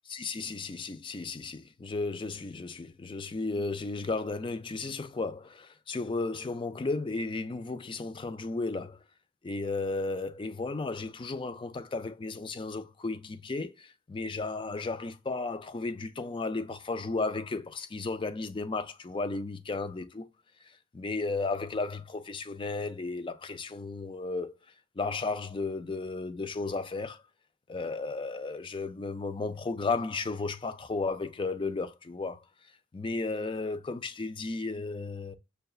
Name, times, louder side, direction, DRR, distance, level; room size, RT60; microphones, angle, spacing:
voice 1, 0.1-9.0 9.4-20.3 20.9-24.6 25.0-27.2 27.7-32.4 32.9-35.4, left 3 dB, 25° left, 0.4 m, -34 dB
6.5 x 2.2 x 2.3 m
head